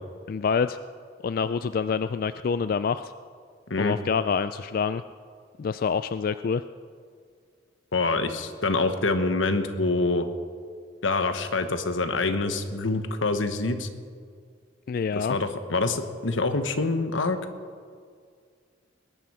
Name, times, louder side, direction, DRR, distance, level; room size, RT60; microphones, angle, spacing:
voice 1, 0.3-0.8 1.2-3.1 3.8-5.0 5.6-6.6 14.9-15.4, left 6 dB, 50° left, 13 dB, 0.3 m, -26 dB
voice 2, 7.9-10.3 11.0-13.9 15.1-17.4, left 3 dB, 90° left, 9 dB, 1.1 m, -26 dB
21.0 x 11.0 x 4.9 m, 2.1 s
head